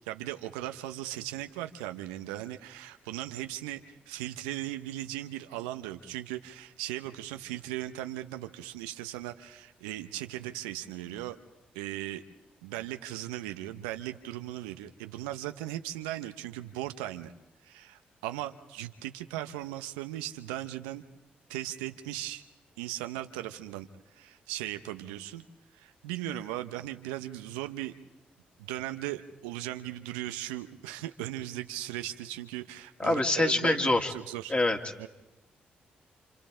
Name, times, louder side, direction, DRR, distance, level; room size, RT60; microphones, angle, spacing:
voice 1, 0.1-11.4 11.7-12.2 12.6-17.3 17.6-21.0 21.5-22.4 22.8-23.9 24.2-25.4 25.7-27.9 28.6-34.5 35.0-35.1, right 14 dB, 85° right, 8 dB, 0.7 m, -38 dB
voice 2, 33.0-34.1 34.5-34.8, left 2 dB, 25° left, 2 dB, 2.7 m, -25 dB
28.0 x 27.5 x 3.8 m, 1.0 s
hypercardioid pair, 40°, 4 cm